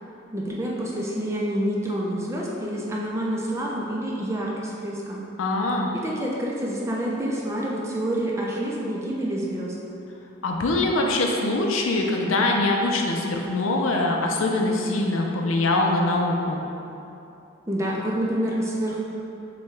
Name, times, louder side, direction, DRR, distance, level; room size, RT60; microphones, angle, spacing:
voice 1, 0.3-5.2 5.9-9.7 17.7-19.0, right 1 dB, 15° right, -3 dB, 0.4 m, -28 dB
voice 2, 5.4-5.9 10.4-16.6, left 2 dB, 90° left, 1 dB, 0.5 m, -23 dB
6.5 x 2.3 x 3.2 m, 2.8 s
head